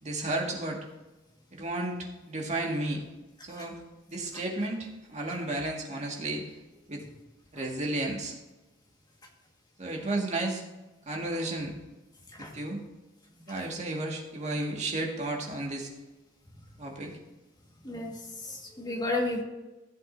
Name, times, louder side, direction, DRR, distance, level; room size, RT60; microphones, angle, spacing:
voice 1, 0.0-0.8 1.5-2.0 2.3-3.0 3.4-3.8 4.1-6.4 6.9-7.0 7.5-8.4 9.8-10.6 11.1-11.7 12.5-12.8 13.5-15.9 16.8-17.2, right 2 dB, 35° right, 0 dB, 1.9 m, -32 dB
voice 2, 18.5-19.4, left 2 dB, 20° left, 0 dB, 1.7 m, -32 dB
14.5 x 7.6 x 2.7 m, 1.1 s
head